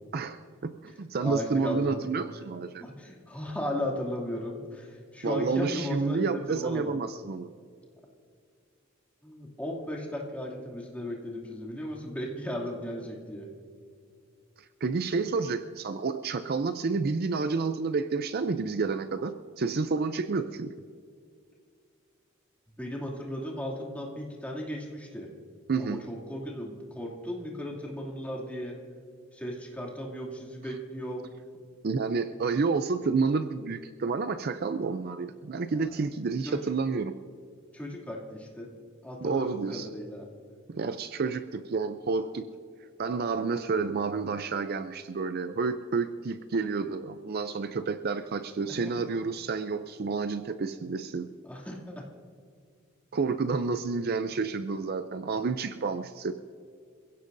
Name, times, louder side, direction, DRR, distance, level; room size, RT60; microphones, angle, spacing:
voice 1, 0.1-2.8 5.2-7.5 14.8-20.7 25.7-26.0 31.8-37.2 39.2-39.9 40.7-42.5 43.0-51.3 53.1-56.3, right 4 dB, 50° right, 10 dB, 0.5 m, -30 dB
voice 2, 1.2-2.0 2.8-7.0 9.2-13.5 22.8-25.3 25.8-28.8 29.3-31.3 35.7-35.9 36.4-36.6 37.7-38.7 39.0-40.2 48.7-48.9 51.4-52.1, equal, 5° left, -3 dB, 2.5 m, -36 dB
27.0 x 16.0 x 2.6 m, 2.2 s
head